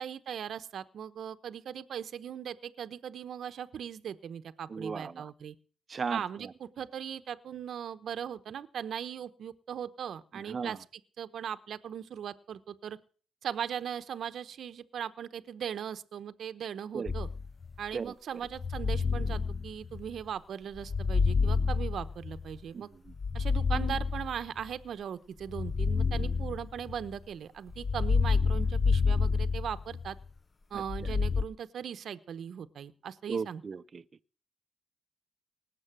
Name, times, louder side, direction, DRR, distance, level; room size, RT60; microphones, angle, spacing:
voice 1, 0.0-5.5 6.1-13.0 13.4-17.3 17.8-22.9 23.3-30.2 30.7-33.6, right 8 dB, 60° right, 0.9 m, -39 dB
voice 2, 4.7-5.3 5.9-6.5 10.3-10.8 16.9-17.1 17.9-18.1 22.7-23.1 30.7-31.1 33.3-34.0, right 5 dB, 40° right, 0.6 m, -37 dB
sound 1, 17.1-17.8 18.5-20.2 20.8-22.6 23.1-24.7 25.5-27.2 27.7-30.2 30.8-31.4, left 5 dB, 30° left, 0.6 m, -29 dB
19.0 x 7.5 x 7.4 m
cardioid pair, 90°, 0 cm